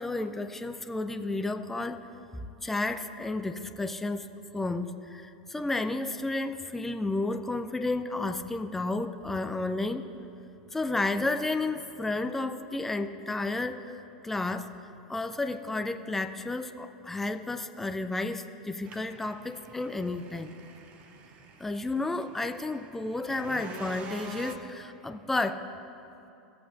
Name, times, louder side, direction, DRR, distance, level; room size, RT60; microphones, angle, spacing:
voice 1, 0.0-2.1 2.6-10.1 10.7-14.0 14.2-14.7 15.1-20.5 21.6-25.7, left 2 dB, 5° left, 9 dB, 0.3 m, -32 dB
sound 1, 18.8-24.5, right 4 dB, 35° right, 0.8 m, -47 dB
16.0 x 8.2 x 2.5 m, 2.8 s
figure-of-eight pair, 85°, 4 cm